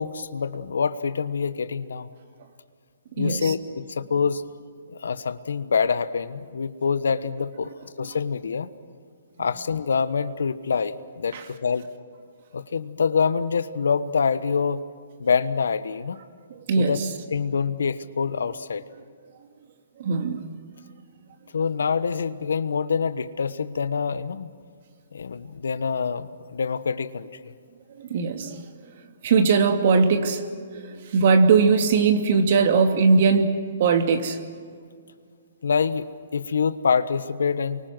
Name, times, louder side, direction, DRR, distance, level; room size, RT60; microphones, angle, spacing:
voice 1, 0.0-2.1 3.2-4.4 5.0-8.7 9.4-11.9 12.5-14.8 15.2-16.2 16.8-17.0 17.3-18.8 21.5-24.5 25.1-27.3 35.6-36.1 36.3-37.8, left 5 dB, 80° left, 13 dB, 1.2 m, -25 dB
voice 2, 3.2-3.5 11.3-11.4 16.7-17.1 20.0-20.4 28.0-28.7 29.2-30.4 30.8-34.4, right 4 dB, 55° right, 5 dB, 2.6 m, -20 dB
29.0 x 24.0 x 6.2 m, 2.1 s
hypercardioid pair, 140°, 0 cm